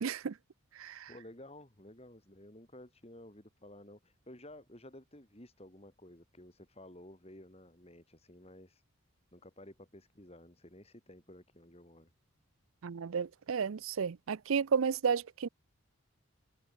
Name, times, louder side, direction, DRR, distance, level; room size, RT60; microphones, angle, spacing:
voice 1, 0.0-0.3 0.8-1.1 12.8-15.5, right 6 dB, 75° right, 0.5 m, -32 dB
voice 2, 1.1-8.8 9.3-12.1, left 1 dB, 30° left, 3.4 m, -53 dB
head